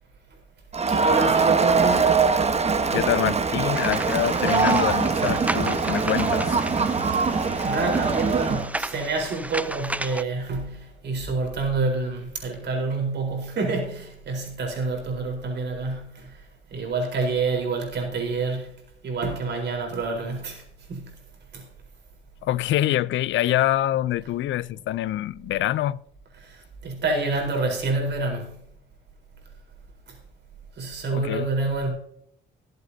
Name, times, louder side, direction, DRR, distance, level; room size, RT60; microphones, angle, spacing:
Crowd, 0.7-8.7, right 5 dB, 30° right, 1.2 m, -22 dB
voice 1, 0.9-2.2 7.3-16.4 16.7-18.7 19.0-20.6 20.9-21.1 21.5-21.6 26.4-28.6 30.8-31.9, right 3 dB, 60° right, 4.2 m, -28 dB
voice 2, 2.9-6.6 22.4-26.0 31.1-31.5, left 13 dB, 70° left, 0.5 m, -25 dB
sound 1, 3.7-10.2, right 1 dB, 5° right, 0.6 m, -33 dB
22.0 x 8.0 x 2.8 m
cardioid pair, 90°, 20 cm